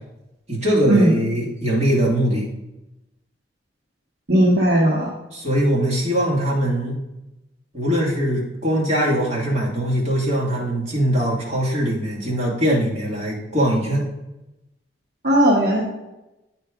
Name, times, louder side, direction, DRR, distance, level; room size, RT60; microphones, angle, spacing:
voice 1, 0.5-2.5 5.3-7.0 7.7-14.0, equal, 40° right, -4 dB, 2.3 m, -21 dB
voice 2, 4.3-5.1 15.2-15.8, right 1 dB, 60° right, -4 dB, 1.4 m, -16 dB
9.1 x 4.4 x 5.0 m, 0.95 s
head